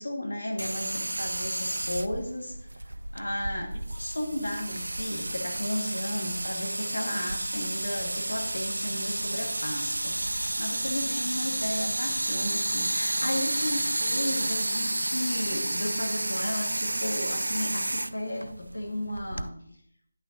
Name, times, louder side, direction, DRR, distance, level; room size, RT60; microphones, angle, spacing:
voice 1, 0.0-2.5 3.1-19.5, left 1 dB, 85° left, 1 dB, 1.8 m, -34 dB
sound 1, 0.6-19.5, right 1 dB, 90° right, 0.3 m, -31 dB
10.0 x 6.3 x 2.8 m, 0.68 s
figure-of-eight pair, 160°, 0 cm